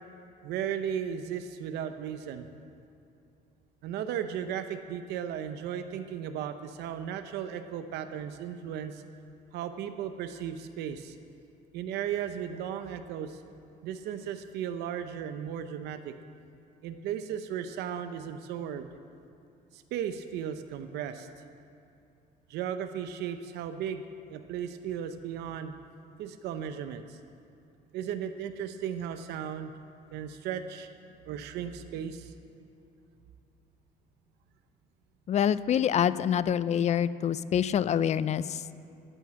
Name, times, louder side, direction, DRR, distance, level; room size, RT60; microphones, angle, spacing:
voice 1, 0.4-2.5 3.8-9.0 9.5-11.1 11.7-13.4 13.8-16.1 16.8-18.9 19.7-21.3 22.5-25.8 26.2-27.2 27.9-29.7 30.1-30.9 31.2-32.3, right 9 dB, 80° right, 9 dB, 0.7 m, -35 dB
voice 2, 35.3-38.6, left 9 dB, 40° left, 16 dB, 0.4 m, -26 dB
11.5 x 9.3 x 7.5 m, 2.7 s
cardioid pair, 110°, 17 cm